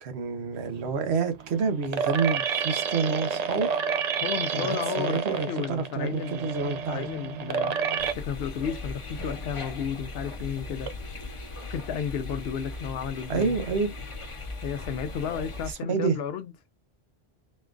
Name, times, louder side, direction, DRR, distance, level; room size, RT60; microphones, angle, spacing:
voice 1, 0.0-3.7 4.5-7.0 13.3-13.9 15.9-16.2, right 5 dB, 80° right, 1.1 m, -28 dB
sound 1, 0.6-8.1, right 6 dB, 50° right, 0.5 m, -30 dB
voice 2, 4.2-7.7 8.2-10.9 11.7-13.5 14.6-16.5, left 8 dB, 75° left, 0.8 m, -33 dB
sound 2, 8.0-15.7, left 2 dB, 35° left, 0.8 m, -38 dB
4.3 x 2.3 x 3.7 m
omnidirectional pair, 1.1 m